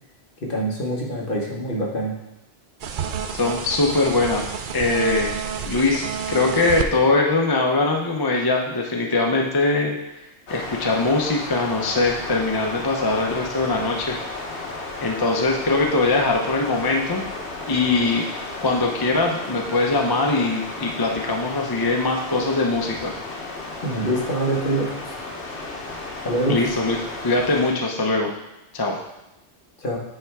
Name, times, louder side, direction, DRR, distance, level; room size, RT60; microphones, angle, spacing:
voice 1, 0.4-2.1 23.8-25.1 26.2-26.6 29.8-30.0, right 1 dB, 50° left, -2 dB, 1.5 m, -25 dB
sound 1, 2.8-6.9, right 7 dB, 60° right, 0.6 m, -29 dB
voice 2, 3.3-5.4 5.6-10.0 10.5-14.2 15.0-17.2 17.7-18.3 18.6-23.1 26.2-28.3 28.7-29.0, left 3 dB, 25° left, 0 dB, 0.6 m, -22 dB
sound 2, 10.5-27.7, left 2 dB, 75° left, 1.4 m, -34 dB
8.7 x 3.5 x 4.7 m, 0.93 s
omnidirectional pair, 1.2 m